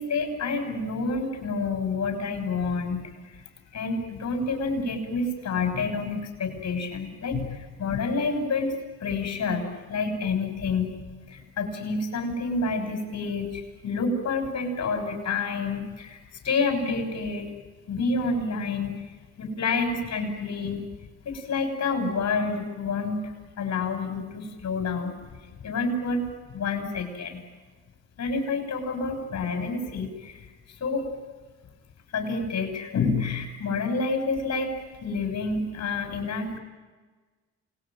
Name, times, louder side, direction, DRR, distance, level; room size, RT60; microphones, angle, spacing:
voice 1, 0.0-3.4 3.7-8.7 9.0-11.0 11.3-16.2 16.4-17.5 17.9-19.1 19.4-20.8 21.2-25.1 25.6-26.2 26.5-27.4 28.2-30.5 30.8-31.1 32.1-34.7 35.0-36.6, left 4 dB, 60° left, 5 dB, 6.5 m, -28 dB
28.0 x 20.0 x 9.3 m, 1.3 s
cardioid pair, 90°, 30 cm